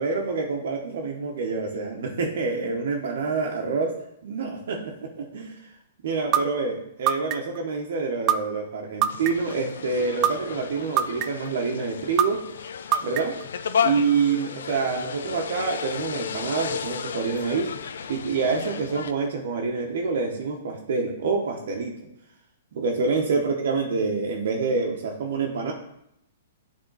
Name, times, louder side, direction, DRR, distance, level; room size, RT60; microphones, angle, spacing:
voice 1, 0.0-3.9 4.2-5.5 6.0-12.4 13.0-13.4 13.8-22.0 22.7-25.7, right 4 dB, 70° right, 0 dB, 0.9 m, -27 dB
sound 1, 6.3-6.4 7.1-7.6 8.3-8.4 9.0-9.5 10.2-10.3 11.0-11.5 12.2-12.3 12.9-13.4, right 10 dB, 25° right, 0.3 m, -21 dB
sound 2, 9.1-19.1, left 7 dB, 80° left, 0.4 m, -33 dB
8.0 x 3.5 x 4.0 m, 0.79 s
hypercardioid pair, 150°, 0 cm